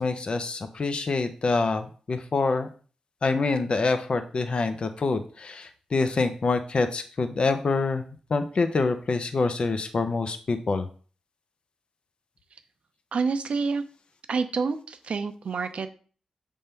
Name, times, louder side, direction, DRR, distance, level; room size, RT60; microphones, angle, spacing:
voice 1, 0.0-2.7 3.2-8.0 8.3-10.9, left 3 dB, 55° left, 8 dB, 0.6 m, -26 dB
voice 2, 13.1-13.8 14.3-15.9, right 4 dB, 70° right, 9 dB, 0.7 m, -28 dB
6.7 x 3.6 x 4.4 m, 0.40 s
cardioid pair, 80°, 2 cm